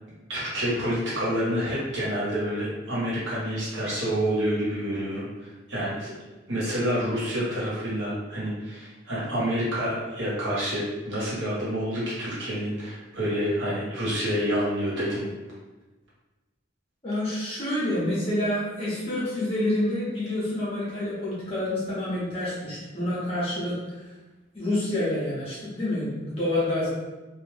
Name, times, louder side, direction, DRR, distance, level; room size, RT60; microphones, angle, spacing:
voice 1, 0.3-6.1 6.5-15.2, equal, 65° right, -8 dB, 1.3 m, -28 dB
voice 2, 17.0-24.0 24.5-26.9, left 1 dB, 30° left, -9 dB, 1.1 m, -28 dB
2.6 x 2.5 x 3.4 m, 1.1 s
head